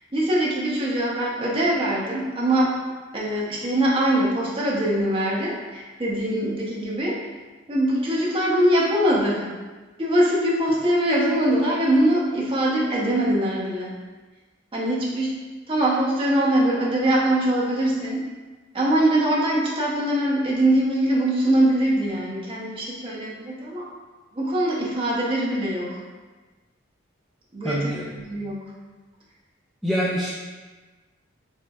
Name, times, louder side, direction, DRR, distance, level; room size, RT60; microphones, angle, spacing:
voice 1, 0.1-2.7 3.1-7.2 7.7-9.4 10.0-13.9 14.7-15.3 15.7-18.2 18.7-23.8 24.3-25.9 27.5-28.6, right 1 dB, 30° right, -5 dB, 0.8 m, -22 dB
voice 2, 27.6-28.1 29.8-30.3, equal, ahead, -8 dB, 0.3 m, -25 dB
4.3 x 3.5 x 2.4 m, 1.3 s
head